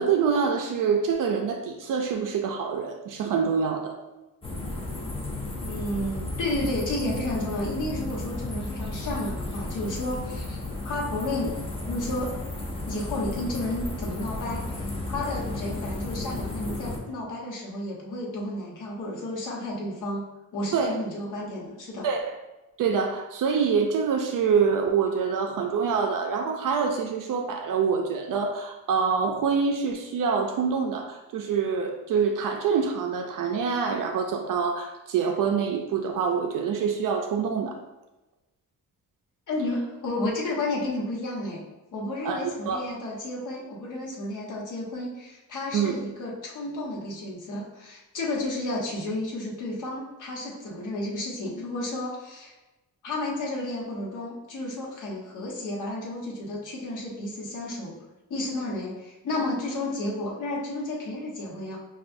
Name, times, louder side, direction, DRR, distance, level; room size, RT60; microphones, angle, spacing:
voice 1, 0.0-4.0 20.7-20.9 22.0-22.2 22.8-37.8 42.2-42.8 45.7-45.9, right 6 dB, 70° right, 3 dB, 0.5 m, -26 dB
sound 1, 4.4-17.0, left 2 dB, 15° left, 0.5 m, -33 dB
voice 2, 5.6-10.6 10.8-11.6 11.9-12.4 12.8-22.1 39.5-41.6 41.9-52.5 53.0-58.0 58.3-61.8, left 1 dB, 60° left, -3 dB, 1.1 m, -32 dB
5.8 x 2.3 x 2.5 m, 1.0 s
cardioid pair, 135°, 34 cm